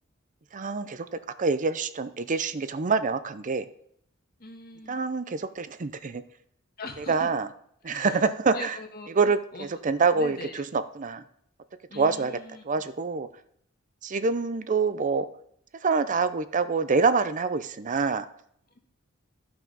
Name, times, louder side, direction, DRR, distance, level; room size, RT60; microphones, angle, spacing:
voice 1, 0.5-1.0 1.4-3.7 4.9-6.2 7.1-7.5 7.8-8.7 9.2-9.4 9.8-10.4 10.7-11.2 12.0-12.4 12.7-13.3 14.0-15.3 15.8-18.3, right 4 dB, 40° right, 12 dB, 0.5 m, -25 dB
voice 2, 4.4-5.0 6.8-7.3 7.8-9.7 10.1-10.6 11.9-12.6, left 2 dB, 50° left, 4 dB, 1.5 m, -41 dB
12.5 x 5.9 x 5.5 m, 0.67 s
head